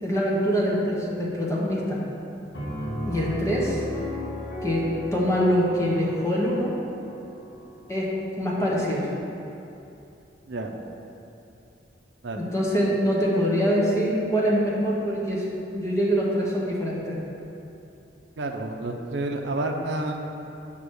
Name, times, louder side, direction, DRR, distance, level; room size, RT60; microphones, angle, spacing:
voice 1, 0.0-2.0 3.0-3.8 4.6-6.7 7.9-8.1 8.4-9.1 12.4-15.4 15.7-17.2, equal, 15° left, -5 dB, 1.1 m, -24 dB
Piano, 2.5-8.1, left 1 dB, 85° left, 1.3 m, -35 dB
voice 2, 18.4-20.5, right 2 dB, 70° right, 2 dB, 0.6 m, -30 dB
7.9 x 3.0 x 6.2 m, 2.8 s
head